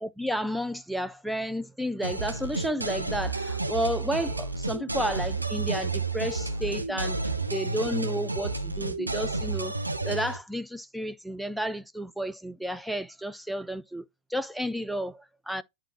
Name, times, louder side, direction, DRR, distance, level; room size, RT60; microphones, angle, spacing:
voice 1, 0.0-9.8 10.0-15.6, equal, ahead, 0.3 m, -32 dB
sound 1, 2.0-10.4, right 3 dB, 85° right, 0.7 m, -31 dB
10.5 x 3.7 x 2.6 m
figure-of-eight pair, 90°, 0 cm